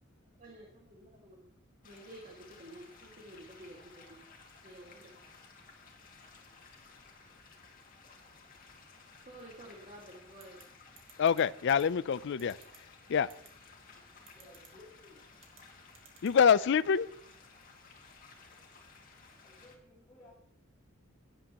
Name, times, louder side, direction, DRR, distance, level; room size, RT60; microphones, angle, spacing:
voice 1, 0.4-1.5 1.8-4.2 4.6-5.1 9.3-10.6, right 1 dB, 40° right, 1.9 m, -51 dB
sound 1, 1.8-19.8, left 4 dB, 45° left, 2.1 m, -57 dB
sound 2, 10.4-10.6 11.0-11.4 11.7-11.8 12.4-12.8 13.3-13.5 14.3-14.7 15.4-15.6 15.9-16.3, right 8 dB, 70° right, 2.0 m, -55 dB
voice 2, 11.2-12.6 13.1-13.3 16.2-17.1, left 7 dB, 60° left, 0.4 m, -25 dB
voice 3, 14.3-15.4 19.4-20.3, left 2 dB, 15° left, 5.1 m, -57 dB
16.0 x 10.0 x 2.9 m
head